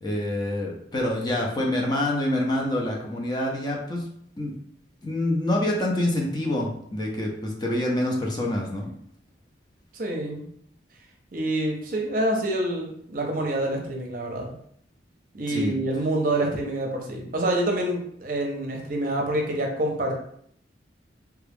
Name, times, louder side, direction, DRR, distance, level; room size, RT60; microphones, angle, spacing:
voice 1, 0.0-4.0 4.4-4.5 5.0-8.9 15.5-15.8, left 1 dB, 25° left, -1 dB, 0.6 m, -26 dB
voice 2, 9.9-10.5 11.3-14.6 15.3-20.1, right 1 dB, 50° right, 1 dB, 0.6 m, -27 dB
3.4 x 2.4 x 3.4 m, 0.66 s
head